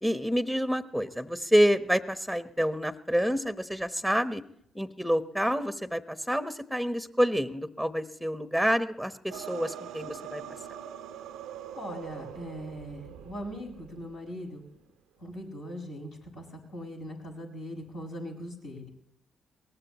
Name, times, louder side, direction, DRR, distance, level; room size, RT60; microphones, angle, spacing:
voice 1, 0.0-4.4 4.7-10.4, equal, 5° left, 10 dB, 1.2 m, -28 dB
sound 1, 9.3-14.2, right 9 dB, 65° right, 0.7 m, -43 dB
voice 2, 11.7-14.6 15.2-16.4 16.7-18.8, equal, 70° left, -3 dB, 6.5 m, -40 dB
22.5 x 19.0 x 3.1 m, 0.70 s
figure-of-eight pair, 40°, 0 cm